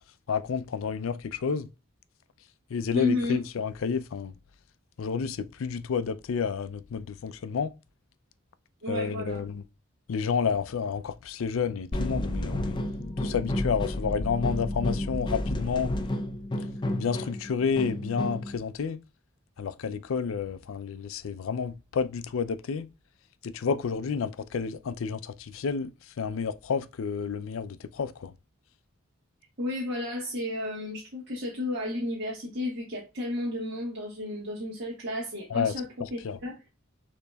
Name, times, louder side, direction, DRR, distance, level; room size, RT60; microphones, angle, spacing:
voice 1, 0.3-1.7 2.7-4.3 5.0-7.7 8.9-9.6 10.1-12.8 13.2-15.9 16.9-19.0 19.6-22.9 23.4-25.9 26.2-28.3 35.5-36.4, left 6 dB, 80° left, 0.4 m, -30 dB
voice 2, 2.9-3.4 8.8-9.4 29.6-36.5, left 1 dB, 55° right, 1.4 m, -32 dB
sound 1, 11.9-18.6, left 1 dB, 25° left, 0.4 m, -31 dB
6.7 x 2.9 x 2.3 m
head